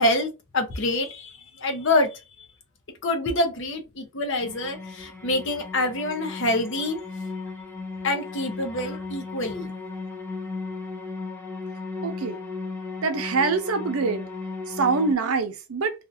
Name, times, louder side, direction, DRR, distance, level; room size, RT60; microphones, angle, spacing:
voice 1, 0.0-2.2 3.0-7.0 8.0-9.7, left 1 dB, 55° left, 0.8 m, -26 dB
sound 1, 4.4-15.1, left 3 dB, 10° left, 0.5 m, -36 dB
voice 2, 12.0-12.4 13.0-14.2 14.8-15.9, right 4 dB, 75° right, 0.6 m, -24 dB
2.8 x 2.5 x 2.6 m
head